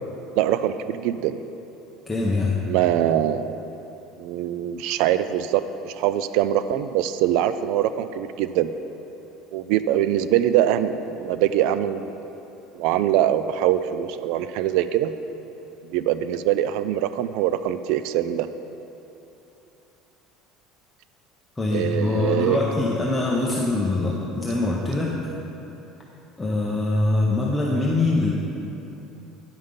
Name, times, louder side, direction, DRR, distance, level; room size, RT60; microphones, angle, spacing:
voice 1, 0.4-1.4 2.7-3.6 4.2-8.7 9.5-12.2 12.8-15.1 15.9-18.5 21.7-22.6, right 11 dB, 65° right, 12 dB, 0.3 m, -23 dB
voice 2, 2.1-2.6 21.6-25.1 26.4-28.3, left 2 dB, 10° left, -4 dB, 0.6 m, -23 dB
9.6 x 5.6 x 5.1 m, 3.0 s
cardioid pair, 165°, 0 cm